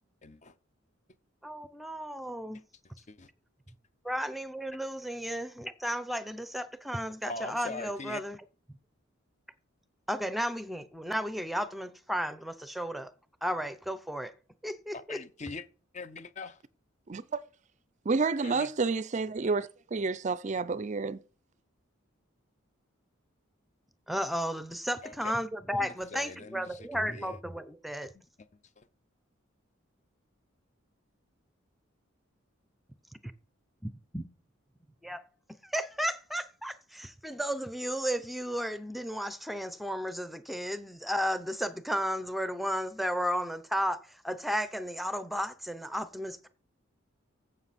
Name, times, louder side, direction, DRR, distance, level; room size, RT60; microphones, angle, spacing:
voice 1, 0.2-0.6 3.0-3.3 7.2-8.2 14.9-15.7 15.9-16.6 18.4-18.7 25.0-25.3 25.8-27.4 28.1-28.9, left 3 dB, 35° left, 0.7 m, -43 dB
voice 2, 1.4-2.6 4.0-8.4 10.1-13.1 13.4-14.3 14.6-15.2 24.1-28.1 33.2-33.3 33.8-34.2 35.0-35.2 35.6-46.5, equal, ahead, 0.7 m, -34 dB
voice 3, 17.1-17.4 18.1-21.2, right 4 dB, 35° right, 0.4 m, -30 dB
15.0 x 6.0 x 4.2 m
head